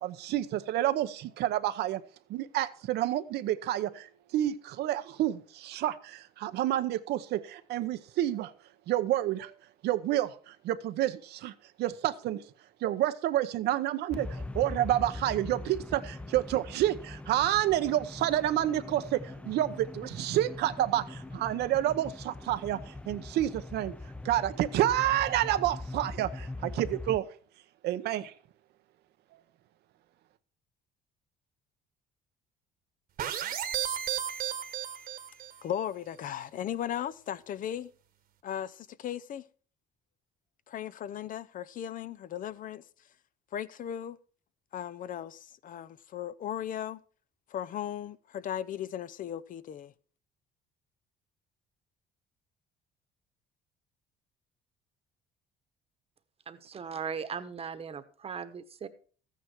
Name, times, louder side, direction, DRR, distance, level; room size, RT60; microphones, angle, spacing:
voice 1, 0.0-2.0 2.3-4.1 4.3-8.5 8.9-9.5 9.8-11.5 11.8-12.4 12.8-23.9 24.2-27.3 27.8-28.3, right 13 dB, 75° right, 0.9 m, -29 dB
sound 1, 14.1-27.2, left 2 dB, 5° left, 0.4 m, -41 dB
sound 2, 33.2-35.6, right 10 dB, 60° right, 1.4 m, -34 dB
voice 2, 35.6-37.9 38.4-39.4 40.7-42.8 43.5-44.2 44.7-47.0 47.5-49.9, left 10 dB, 55° left, 0.6 m, -37 dB
voice 3, 56.5-58.9, right 6 dB, 35° right, 1.2 m, -38 dB
13.5 x 9.3 x 4.5 m
cardioid pair, 110°, 17 cm